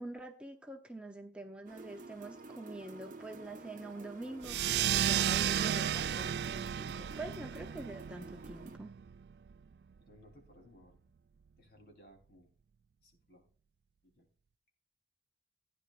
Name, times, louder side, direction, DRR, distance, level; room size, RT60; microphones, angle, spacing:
voice 1, 0.0-8.9, right 2 dB, 5° right, 4 dB, 0.8 m, -46 dB
sound 1, 1.6-8.8, right 3 dB, 45° right, 0.9 m, -51 dB
sound 2, 4.4-9.5, right 10 dB, 65° right, 0.4 m, -33 dB
voice 2, 10.1-11.0 11.6-12.5 13.0-13.5 14.0-14.3, equal, 55° left, 1 dB, 3.7 m, -60 dB
16.5 x 9.8 x 2.5 m, 0.43 s
head